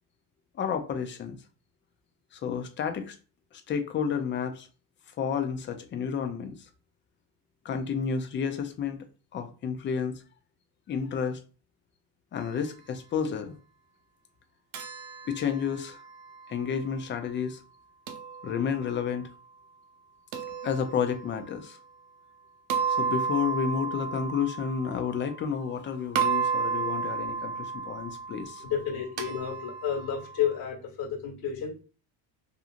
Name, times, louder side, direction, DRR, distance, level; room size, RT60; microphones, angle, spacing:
voice 1, 0.6-1.4 2.3-3.2 3.7-4.7 5.2-6.6 7.6-9.0 9.3-10.2 10.9-11.4 12.3-13.6 15.3-16.0 16.5-17.6 18.4-19.3 20.6-21.8 23.0-28.7, left 7 dB, 25° left, 0.3 m, -31 dB
sound 1, 14.7-16.8 18.1-19.1 20.3-21.5 22.7-25.8 26.2-30.6, right 6 dB, 60° right, 0.7 m, -33 dB
voice 2, 28.6-31.8, left 8 dB, 45° left, 1.5 m, -31 dB
2.8 x 2.5 x 2.4 m
cardioid pair, 115°, 49 cm